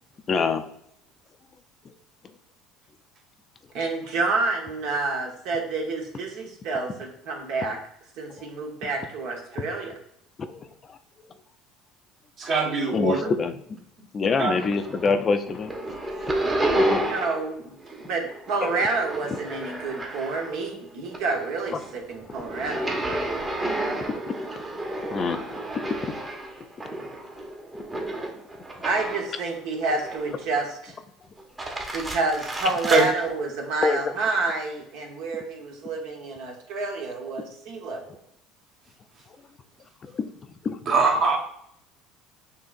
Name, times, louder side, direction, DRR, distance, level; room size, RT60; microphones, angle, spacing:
voice 1, 0.3-0.7 8.4-8.5 9.5-9.7 10.4-11.0 12.9-13.6 14.1-16.0 16.7-17.1 24.1-24.4 25.1-25.4 25.7-26.2 27.7-27.8 33.8-34.0 40.0-40.3 40.6-40.9, left 4 dB, 35° left, 9 dB, 0.4 m, -26 dB
voice 2, 3.7-7.8 8.2-9.9 17.1-22.9 26.9-27.0 28.8-30.9 31.9-38.2, right 3 dB, 70° right, 1 dB, 1.0 m, -29 dB
voice 3, 12.4-13.2 14.4-14.5 32.9-33.0 40.9-41.4, right 4 dB, 50° right, -1 dB, 1.4 m, -21 dB
sound 1, 14.5-15.2 15.5-17.5 17.8-20.7 21.1-29.4 29.9-30.6 31.4-33.1, right 1 dB, 20° right, 1.0 m, -31 dB
6.6 x 2.8 x 2.5 m, 0.72 s
supercardioid pair, 90°, 0 cm